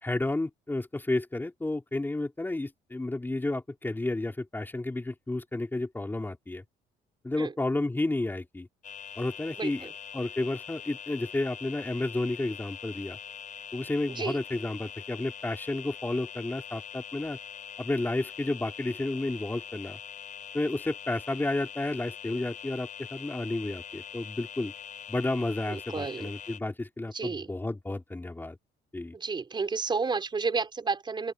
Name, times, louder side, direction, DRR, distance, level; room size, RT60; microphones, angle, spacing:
voice 1, 0.0-6.6 7.2-8.7 9.2-9.9 10.1-13.2 13.7-17.4 17.8-20.0 20.5-24.7 25.1-28.6 28.9-29.1, left 2 dB, 10° left, 3.9 m, -31 dB
sound 1, 8.8-26.6, left 8 dB, 50° left, 7.5 m, -43 dB
voice 2, 9.6-9.9 14.1-14.4 25.7-26.3 27.1-27.5 29.1-31.3, right 4 dB, 25° right, 5.1 m, -31 dB
open air
cardioid pair, 110°, 17 cm